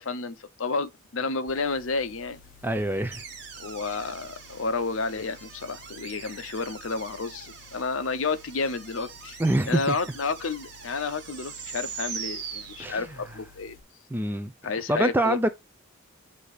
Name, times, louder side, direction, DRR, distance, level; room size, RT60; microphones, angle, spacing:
voice 1, 0.0-2.4 3.6-9.4 9.7-13.8 14.6-15.4, left 4 dB, 65° left, 0.7 m, -31 dB
sound 1, 1.5-13.8, left 5 dB, 40° left, 1.2 m, -54 dB
voice 2, 2.6-3.2 9.4-9.9 12.8-13.1 14.1-14.5 14.9-15.5, right 1 dB, 10° right, 0.4 m, -25 dB
sound 2, 3.1-13.4, right 6 dB, 50° right, 1.4 m, -42 dB
8.3 x 2.8 x 4.8 m
head